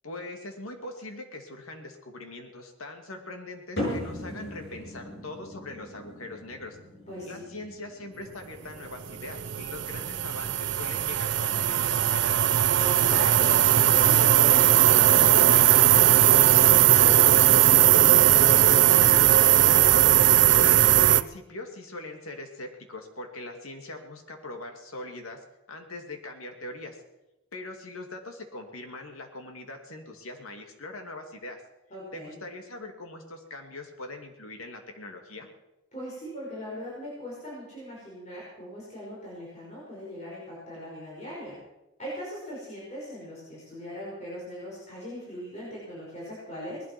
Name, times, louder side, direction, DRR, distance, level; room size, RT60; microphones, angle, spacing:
voice 1, 0.0-6.8 7.2-12.4 20.5-25.4 25.7-27.0 27.5-31.6 32.1-35.5, left 2 dB, 85° left, 4 dB, 2.4 m, -41 dB
sound 1, 3.8-10.5, left 1 dB, 50° left, 7.5 m, -39 dB
voice 2, 7.1-7.5 12.8-17.3 17.7-19.5 31.9-32.4 35.9-41.5 42.0-46.8, equal, 35° left, -6 dB, 5.6 m, -39 dB
sound 2, 9.0-21.2, right 12 dB, 55° right, 0.5 m, -19 dB
19.5 x 12.0 x 6.1 m, 0.94 s
head